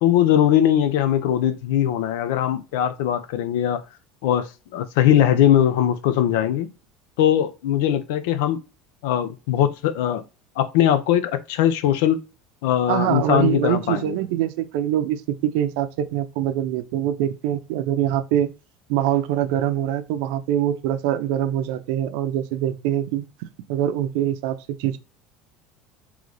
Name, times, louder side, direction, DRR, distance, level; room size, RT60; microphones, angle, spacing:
voice 1, 0.0-3.8 4.2-6.7 7.2-8.6 9.0-10.2 10.6-12.2 12.6-14.2, left 11 dB, 80° left, 0.6 m, -20 dB
voice 2, 12.9-18.5 18.9-23.2 23.7-25.0, right 11 dB, 70° right, 0.5 m, -24 dB
3.8 x 3.1 x 3.2 m
cardioid pair, 160°, 0 cm